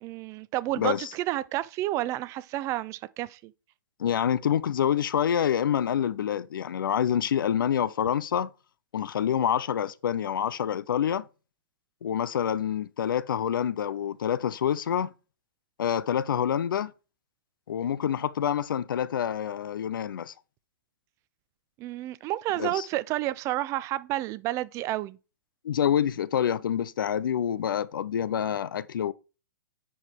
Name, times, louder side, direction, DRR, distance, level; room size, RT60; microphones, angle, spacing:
voice 1, 0.0-3.5 21.8-25.2, right 15 dB, 25° right, 0.4 m, -30 dB
voice 2, 0.8-1.1 4.0-8.5 8.9-11.3 12.0-15.1 15.8-16.9 17.7-20.3 22.6-22.9 25.6-29.1, left 9 dB, 75° left, 0.6 m, -27 dB
9.9 x 4.7 x 3.5 m
hypercardioid pair, 135°, 11 cm